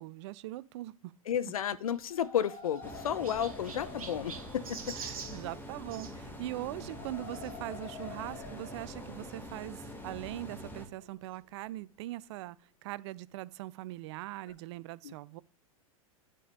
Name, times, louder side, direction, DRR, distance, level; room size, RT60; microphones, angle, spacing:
voice 1, 0.0-1.1 4.9-12.6 12.8-15.4, right 17 dB, 50° right, 0.5 m, -41 dB
voice 2, 1.3-4.6 15.0-15.1, left 9 dB, 75° left, 0.8 m, -32 dB
Chirp tweet, 1.8-6.1 7.3-7.5 8.2-8.3 8.5-8.6 9.9-10.0, right 6 dB, 75° right, 1.7 m, -46 dB
sound 1, 1.9-11.8, left 5 dB, 45° left, 2.7 m, -50 dB
sound 2, 2.8-10.9, equal, 10° left, 2.1 m, -45 dB
9.9 x 5.1 x 5.4 m
hypercardioid pair, 100°, 19 cm